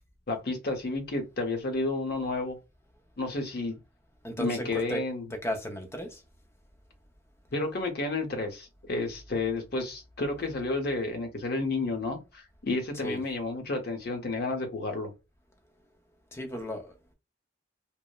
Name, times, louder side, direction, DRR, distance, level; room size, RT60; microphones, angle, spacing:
voice 1, 0.3-2.6 3.2-3.8 4.4-5.2 7.5-15.1, left 2 dB, 50° left, 0.7 m, -31 dB
voice 2, 4.2-5.0 5.3-6.2 12.9-13.2 16.3-17.1, equal, 15° left, 0.5 m, -35 dB
2.9 x 2.0 x 2.2 m
head